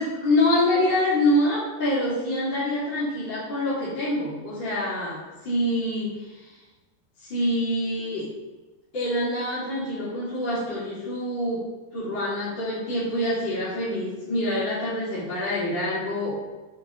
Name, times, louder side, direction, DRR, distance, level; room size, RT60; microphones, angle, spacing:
voice 1, 0.0-6.5 7.2-8.3 8.9-16.4, left 1 dB, 30° left, -11 dB, 3.6 m, -26 dB
7.5 x 5.8 x 6.6 m, 1.2 s
omnidirectional pair, 4.1 m